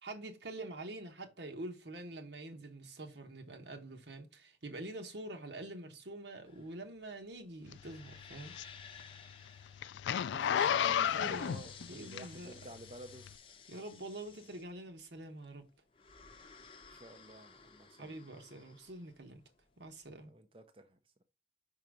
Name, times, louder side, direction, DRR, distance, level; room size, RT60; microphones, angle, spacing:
voice 1, 0.0-8.6 10.5-12.5 13.7-15.6 18.0-19.4 19.8-20.3, right 1 dB, 75° right, 1.1 m, -46 dB
sound 1, 6.5-20.1, left 6 dB, 30° left, 0.7 m, -56 dB
Zipper (clothing), 7.7-12.7 13.2-13.3, left 8 dB, 80° left, 0.3 m, -33 dB
voice 2, 10.2-10.7 11.0-13.3 14.3-14.6 16.9-18.1 20.2-21.0, right 1 dB, 30° right, 0.6 m, -53 dB
5.6 x 3.9 x 4.7 m
head